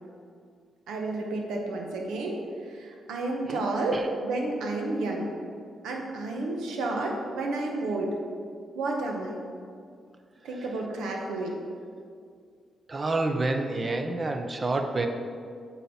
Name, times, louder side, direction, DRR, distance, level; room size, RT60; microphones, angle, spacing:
voice 1, 0.9-5.3 5.8-8.1 8.8-9.4 10.4-11.6, right 2 dB, 90° right, 1 dB, 0.9 m, -31 dB
voice 2, 12.9-15.1, right 2 dB, 35° right, 5 dB, 0.6 m, -28 dB
8.2 x 4.0 x 4.2 m, 2.2 s
cardioid pair, 65°, 0 cm